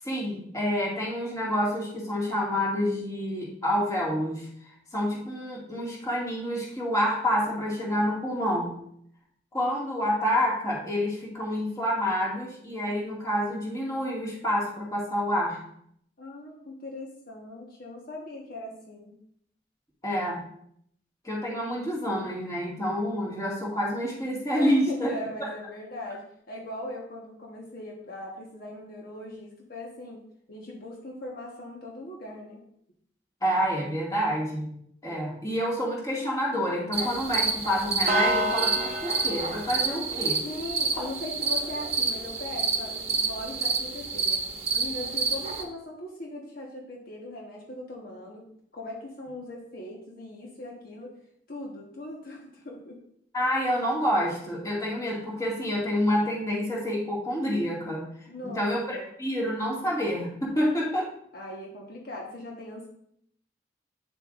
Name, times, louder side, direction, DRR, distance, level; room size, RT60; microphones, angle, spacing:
voice 1, 0.0-4.5 4.9-8.7 9.5-15.6 20.0-20.4 21.2-25.1 25.4-25.5 33.4-34.7 35.0-40.4 53.3-58.0 58.4-61.1, equal, 20° left, -4 dB, 2.2 m, -28 dB
voice 2, 16.2-19.2 24.5-30.2 30.5-32.6 40.4-44.4 44.7-48.4 48.7-51.1 51.5-53.0 58.3-59.1 61.3-62.9, left 1 dB, 55° left, -1 dB, 1.3 m, -39 dB
sound 1, 36.9-45.6, right 3 dB, 35° right, 1.0 m, -28 dB
9.0 x 7.5 x 2.5 m, 0.69 s
head